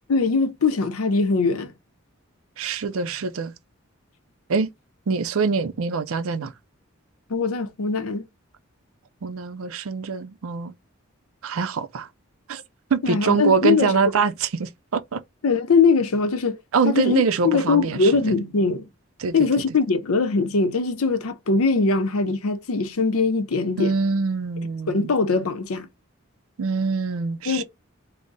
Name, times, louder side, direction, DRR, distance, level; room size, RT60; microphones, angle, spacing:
voice 1, 0.1-1.7 7.3-8.3 13.0-13.9 15.4-16.6 16.9-18.9 19.3-23.9 24.9-25.9 27.5-27.6, left 4 dB, 85° left, 0.6 m, -21 dB
voice 2, 2.6-3.5 4.5-4.7 5.1-6.5 9.2-10.7 11.4-12.1 12.5-12.6 12.9-15.2 16.7-18.3 19.2-19.5 23.8-25.1 26.6-27.6, right 5 dB, 80° right, 0.5 m, -24 dB
3.6 x 2.0 x 3.9 m
head